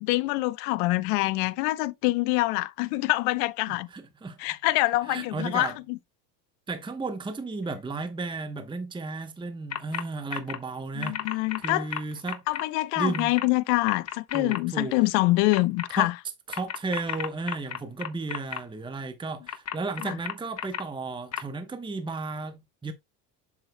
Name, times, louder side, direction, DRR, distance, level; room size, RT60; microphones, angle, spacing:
voice 1, 0.0-3.9 4.4-6.0 11.0-11.9 12.5-16.1 20.0-20.1, left 21 dB, 80° left, 0.8 m, -25 dB
voice 2, 3.7-4.4 5.0-5.8 6.7-12.4 13.0-13.3 14.3-15.0 16.0-16.1 16.5-22.9, right 3 dB, 10° right, 0.9 m, -34 dB
sound 1, 9.7-10.0 10.3-10.6 11.0-12.6 13.1-13.4 13.9-14.6 15.5-15.9 16.5-18.6 19.5-20.8 21.3-21.4, left 9 dB, 35° left, 1.2 m, -33 dB
7.7 x 7.3 x 2.2 m
supercardioid pair, 105°, 44 cm